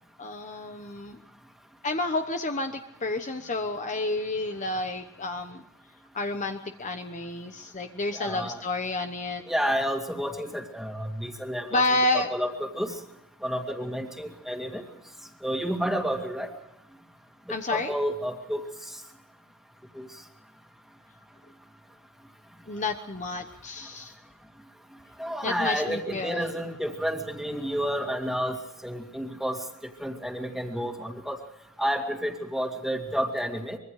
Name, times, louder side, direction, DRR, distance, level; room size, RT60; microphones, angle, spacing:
voice 1, 0.2-1.2 1.8-5.6 6.1-9.4 11.7-12.3 17.5-17.9 22.7-24.1 25.4-26.5, left 2 dB, 35° left, 6 dB, 1.1 m, -30 dB
voice 2, 8.1-8.6 9.5-11.8 12.1-13.0 13.4-14.8 15.4-16.5 17.5-19.0 19.9-20.1 25.2-29.6 30.0-31.4 31.8-33.8, equal, ahead, 3 dB, 2.3 m, -30 dB
24.5 x 22.5 x 4.9 m, 0.81 s
head